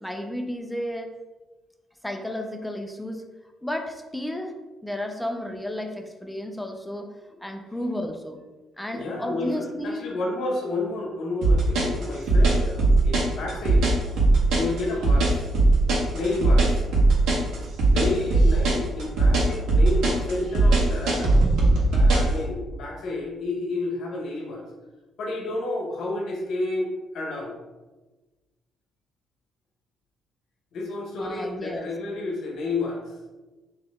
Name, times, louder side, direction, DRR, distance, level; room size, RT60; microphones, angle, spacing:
voice 1, 0.0-1.1 2.0-3.2 3.6-4.5 4.8-7.1 7.4-8.4 8.8-10.1 31.2-31.9, left 1 dB, 5° left, 4 dB, 0.5 m, -32 dB
voice 2, 8.9-13.9 14.5-15.5 16.1-16.9 17.9-21.3 21.9-24.6 25.2-27.5 30.7-33.2, left 2 dB, 70° left, 0 dB, 0.9 m, -30 dB
sound 1, 11.4-22.3, right 2 dB, 85° right, 1.4 m, -19 dB
4.1 x 2.9 x 3.5 m, 1.2 s
cardioid pair, 110°, 0 cm